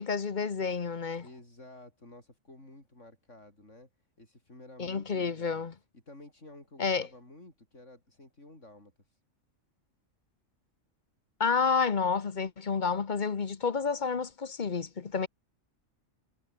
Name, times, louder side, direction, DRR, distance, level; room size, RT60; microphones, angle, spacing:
voice 1, 0.0-1.3 4.8-5.7 6.8-7.1 11.4-15.3, left 5 dB, 40° left, 1.1 m, -30 dB
voice 2, 1.2-3.9 4.2-5.7 6.1-8.9, left 2 dB, 70° left, 7.4 m, -52 dB
omnidirectional pair, 1.3 m